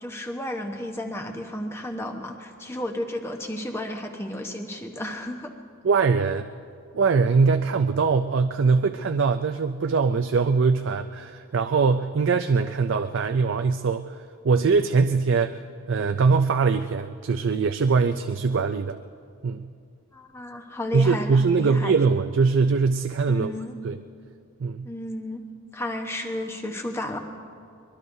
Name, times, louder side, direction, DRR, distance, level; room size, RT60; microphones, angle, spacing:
voice 1, 0.0-5.5 20.1-21.9 23.3-23.8 24.8-25.4 25.7-27.2, left 1 dB, 10° left, 3 dB, 1.0 m, -32 dB
voice 2, 5.8-6.5 6.9-14.2 14.4-15.6 15.9-19.0 19.4-19.7 20.9-23.5 23.8-24.0 24.6-24.9, right 4 dB, 55° right, 7 dB, 0.4 m, -22 dB
23.5 x 22.0 x 2.7 m, 2.4 s
head